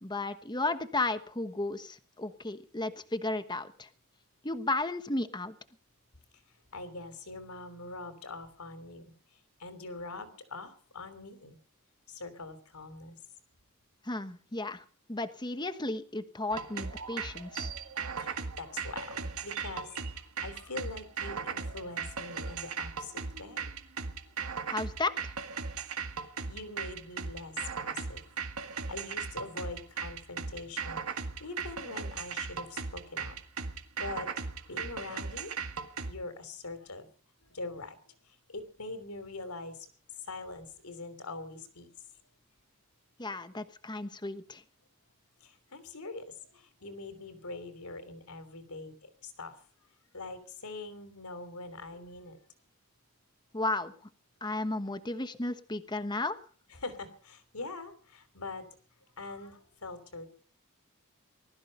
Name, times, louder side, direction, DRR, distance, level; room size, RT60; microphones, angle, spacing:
voice 1, 0.0-3.9 4.4-5.5 14.0-17.7 24.7-25.3 43.2-44.6 53.5-53.9 54.4-56.4, left 2 dB, 20° left, 10 dB, 1.2 m, -34 dB
voice 2, 6.7-11.6 12.1-13.2 18.2-23.7 26.1-28.2 28.9-33.4 34.0-34.3 34.7-35.5 36.0-37.1 37.5-41.9 45.4-49.6 50.1-52.4 56.7-58.6 59.2-60.3, left 3 dB, 90° left, 11 dB, 3.2 m, -43 dB
sound 1, 16.5-36.1, right 5 dB, 80° right, 1.9 m, -37 dB
20.0 x 13.5 x 5.4 m, 0.43 s
head